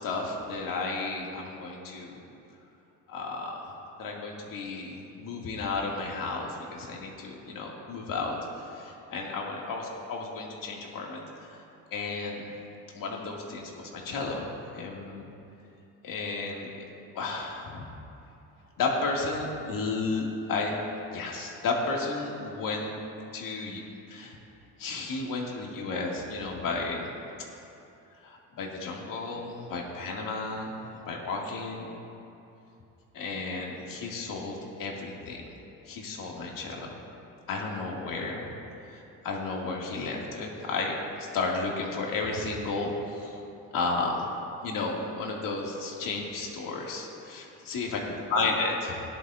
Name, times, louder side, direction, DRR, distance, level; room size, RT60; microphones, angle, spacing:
voice 1, 0.0-2.2 3.1-3.7 4.0-11.6 11.9-12.5 12.9-15.3 16.0-16.8 17.1-17.8 18.8-20.7 21.1-23.0 23.3-23.8 24.1-24.3 24.8-27.1 28.2-31.9 33.1-35.4 35.9-36.9 37.5-38.5 38.9-43.3 43.7-44.3 44.6-48.0 48.3-49.0, left 3 dB, 70° left, -2 dB, 2.2 m, -33 dB
18.0 x 11.0 x 2.5 m, 2.7 s
supercardioid pair, 75°, 35 cm